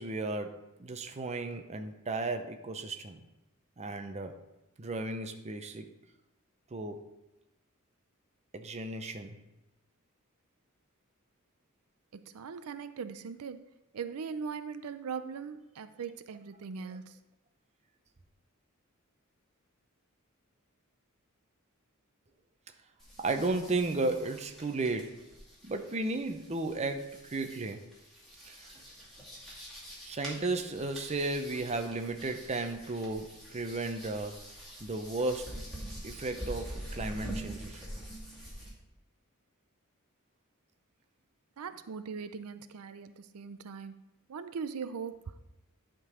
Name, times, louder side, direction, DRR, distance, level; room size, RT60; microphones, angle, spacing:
voice 1, 0.0-3.2 3.8-4.4 4.8-5.8 6.7-7.1 8.5-9.4 23.2-25.3 25.6-27.8 28.4-28.7 30.1-34.5 34.8-35.6 36.0-37.8, right 2 dB, 30° right, 6 dB, 0.6 m, -34 dB
voice 2, 12.1-13.6 13.9-17.2 41.6-43.9 44.3-45.4, right 6 dB, 90° right, 11 dB, 0.5 m, -40 dB
sound 1, 23.0-38.7, right 1 dB, ahead, 2.4 m, -45 dB
11.0 x 3.8 x 4.9 m, 0.97 s
head